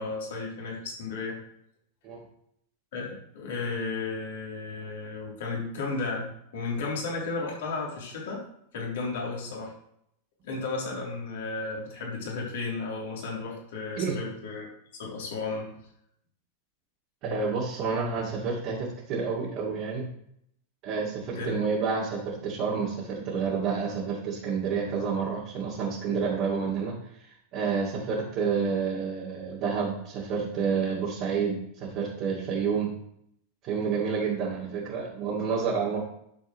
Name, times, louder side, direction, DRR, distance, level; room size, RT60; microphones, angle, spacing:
voice 1, 0.0-1.4 2.9-8.4 8.7-9.7 10.4-14.7 14.9-15.7 21.3-21.6, left 3 dB, 55° left, -3 dB, 3.3 m, -34 dB
voice 2, 17.2-20.0 20.8-32.9 33.6-36.0, right 5 dB, 40° right, -6 dB, 2.4 m, -29 dB
11.5 x 7.1 x 3.2 m, 0.73 s
figure-of-eight pair, 90°, 0 cm